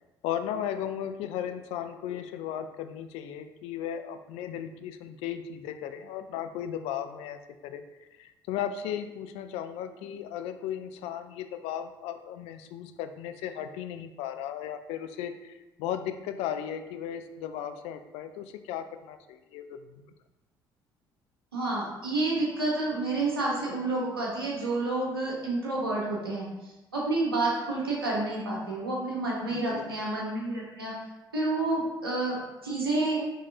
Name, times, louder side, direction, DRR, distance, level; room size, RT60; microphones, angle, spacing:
voice 1, 0.2-20.1 29.5-30.0, left 9 dB, 60° left, 9 dB, 0.4 m, -36 dB
voice 2, 21.5-30.9 31.3-32.4 32.6-33.2, right 2 dB, 85° right, -4 dB, 1.0 m, -29 dB
5.3 x 3.2 x 2.7 m, 1.0 s
figure-of-eight pair, 50°, 12 cm